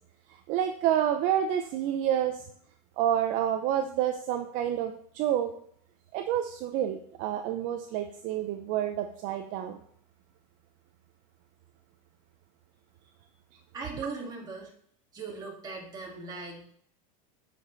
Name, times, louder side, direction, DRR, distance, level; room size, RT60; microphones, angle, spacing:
voice 1, 0.3-2.4 3.0-5.5 6.1-9.8, right 10 dB, 50° right, 6 dB, 0.6 m, -29 dB
voice 2, 13.7-14.7 15.1-16.6, right 4 dB, 20° right, -2 dB, 2.1 m, -39 dB
8.5 x 5.1 x 4.0 m, 0.64 s
supercardioid pair, 140°, 18 cm